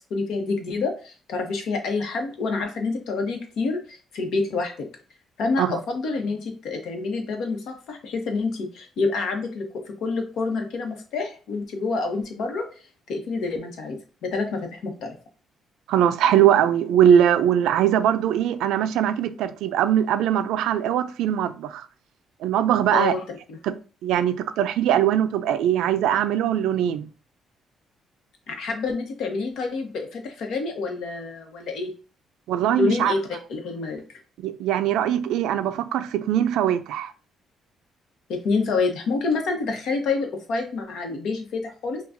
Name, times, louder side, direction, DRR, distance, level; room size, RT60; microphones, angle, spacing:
voice 1, 0.1-4.9 5.4-12.7 13.1-15.1 22.9-23.2 23.5-23.6 28.5-31.9 32.7-33.2 33.5-34.0 38.3-42.0, left 4 dB, 80° left, 1.0 m, -27 dB
voice 2, 15.9-21.9 22.4-23.1 23.6-23.7 24.0-27.1 32.5-33.1 34.4-37.1, right 10 dB, 90° right, 0.3 m, -21 dB
5.7 x 2.3 x 2.6 m
cardioid pair, 90°, 0 cm